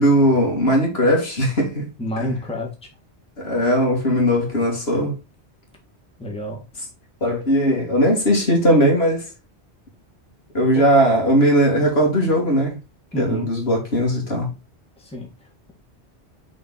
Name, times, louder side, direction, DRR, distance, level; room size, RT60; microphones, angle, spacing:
voice 1, 0.0-1.9 2.2-2.3 3.4-5.1 7.2-9.3 10.5-12.8 13.2-14.6, equal, 65° left, 2.7 m, -18 dB
voice 2, 2.0-2.7 6.2-6.6 10.7-10.9 13.1-13.5 15.0-15.7, left 1 dB, 5° left, 1.5 m, -29 dB
6.5 x 4.1 x 4.0 m
omnidirectional pair, 1.1 m